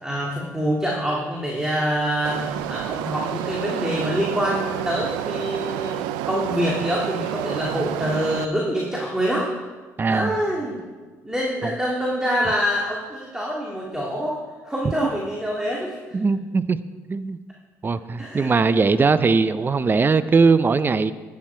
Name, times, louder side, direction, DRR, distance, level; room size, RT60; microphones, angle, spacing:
voice 1, 0.0-6.0 6.3-9.5 10.1-10.8 11.2-14.4 14.6-16.0 18.2-18.5, equal, 10° right, -3 dB, 2.1 m, -25 dB
sound 1, 2.2-8.4, right 13 dB, 80° right, 0.4 m, -29 dB
voice 2, 10.0-10.4 11.6-11.7 16.1-16.8 17.1-17.4 17.8-21.1, right 4 dB, 30° right, 14 dB, 0.5 m, -20 dB
11.5 x 9.6 x 4.5 m, 1.3 s
supercardioid pair, 65°, 7 cm